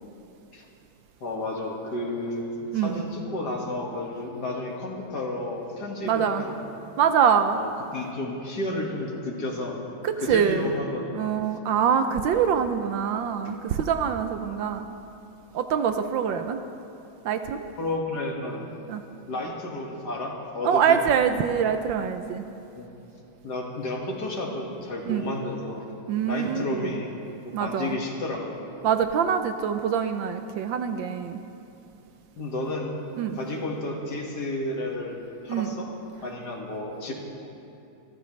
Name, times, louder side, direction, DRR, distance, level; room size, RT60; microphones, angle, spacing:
voice 1, 1.2-6.6 7.5-9.8 10.2-11.1 17.8-18.7 19.3-21.0 22.8-22.9 23.4-25.9 26.2-27.1 27.5-28.6 32.4-32.9 33.3-35.9 36.2-37.1, left 2 dB, 55° left, -1 dB, 2.3 m, -32 dB
voice 2, 2.7-3.0 6.0-6.4 7.0-7.6 10.0-10.7 11.1-14.9 15.5-16.6 17.2-17.7 18.9-19.0 20.6-22.4 25.0-25.3 26.1-27.0 27.5-28.0 28.8-31.4 33.2-33.4 35.5-35.8, right 7 dB, 75° right, 8 dB, 1.3 m, -24 dB
28.0 x 13.5 x 3.2 m, 2.8 s
omnidirectional pair, 2.3 m